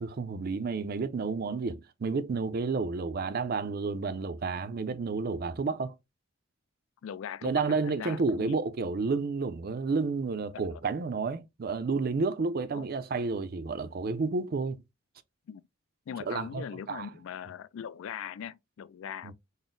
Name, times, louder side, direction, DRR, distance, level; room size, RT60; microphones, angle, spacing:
voice 1, 0.0-5.9 7.4-14.8 16.3-17.1 19.2-19.3, right 4 dB, 45° right, 0.4 m, -31 dB
voice 2, 7.0-8.6 10.5-10.8 12.7-12.9 15.5-15.6 16.1-19.3, left 8 dB, 70° left, 0.3 m, -40 dB
3.9 x 2.0 x 3.6 m
head